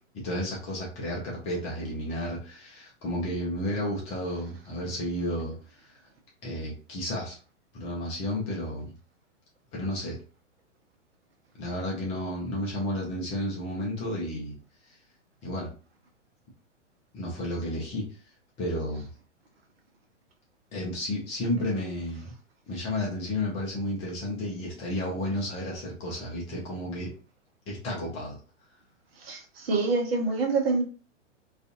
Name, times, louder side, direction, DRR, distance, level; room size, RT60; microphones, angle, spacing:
voice 1, 0.1-5.9 6.4-7.4 7.7-8.9 9.7-10.2 11.6-14.5 14.9-15.0 15.4-15.7 17.1-18.1 18.6-19.1 20.7-22.3 22.7-27.1 27.7-28.4, left 1 dB, 15° left, -3 dB, 0.6 m, -32 dB
voice 2, 29.2-30.8, right 3 dB, 55° right, 2 dB, 0.8 m, -26 dB
2.4 x 2.4 x 2.5 m, 0.38 s
figure-of-eight pair, 110°, 37 cm